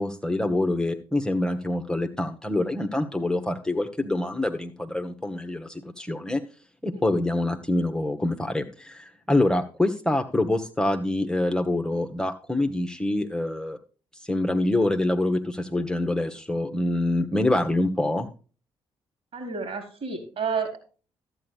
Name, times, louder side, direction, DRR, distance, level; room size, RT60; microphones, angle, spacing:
voice 1, 0.0-6.4 6.8-13.8 14.2-18.3, left 1 dB, 5° left, 4 dB, 1.2 m, -25 dB
voice 2, 19.3-20.8, right 5 dB, 50° right, 6 dB, 4.3 m, -30 dB
14.0 x 8.9 x 2.3 m, 0.35 s
figure-of-eight pair, 40°, 13 cm